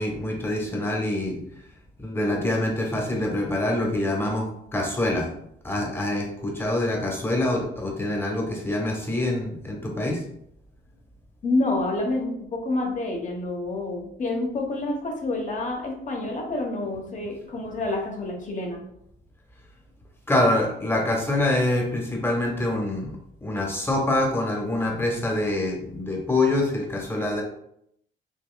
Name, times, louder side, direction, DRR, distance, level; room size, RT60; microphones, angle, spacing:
voice 1, 0.0-1.4 2.0-5.3 5.6-10.2 20.3-23.1 23.4-27.4, left 1 dB, 10° left, 0 dB, 1.1 m, -25 dB
voice 2, 11.4-18.8, left 2 dB, 40° left, 1 dB, 1.1 m, -28 dB
5.5 x 2.9 x 2.3 m, 0.73 s
cardioid pair, 90°, 20 cm